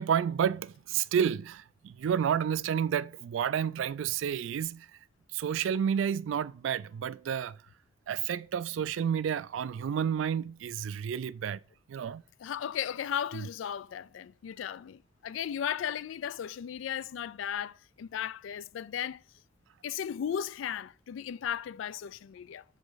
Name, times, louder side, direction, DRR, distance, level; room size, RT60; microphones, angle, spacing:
voice 1, 0.0-4.9 5.3-7.6 8.1-11.6 11.9-12.2, right 8 dB, 80° right, 0.3 m, -30 dB
voice 2, 12.4-19.2 19.8-22.6, left 9 dB, 85° left, 0.3 m, -36 dB
7.3 x 4.9 x 4.0 m
head